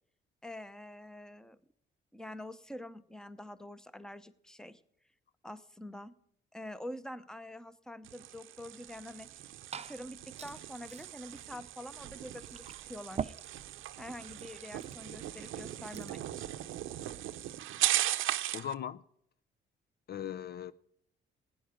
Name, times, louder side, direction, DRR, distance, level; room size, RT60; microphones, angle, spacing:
voice 1, 0.4-1.6 2.1-4.8 5.4-6.1 6.5-9.4 9.8-13.3 14.0-16.7, left 1 dB, 5° left, 0.8 m, -46 dB
sound 1, 8.0-18.7, right 14 dB, 85° right, 0.7 m, -38 dB
Liquid, 9.2-16.3, right 7 dB, 35° right, 0.5 m, -46 dB
voice 2, 18.5-19.0 20.1-20.7, left 9 dB, 55° left, 0.5 m, -38 dB
16.0 x 10.0 x 5.1 m
cardioid pair, 90°, 20 cm